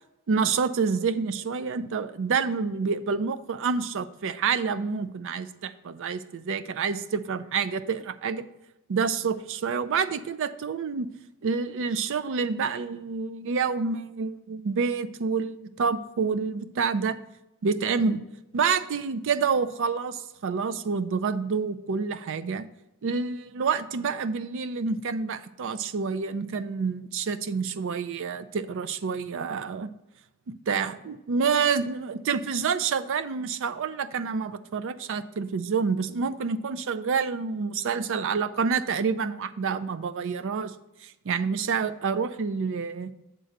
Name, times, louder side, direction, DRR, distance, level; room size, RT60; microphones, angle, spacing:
voice 1, 0.3-8.5 8.9-11.1 11.4-17.2 17.6-18.2 18.5-22.7 23.0-29.9 30.5-40.7 41.0-43.1, right 5 dB, 60° right, 13 dB, 0.4 m, -28 dB
7.8 x 3.8 x 6.5 m, 0.94 s
head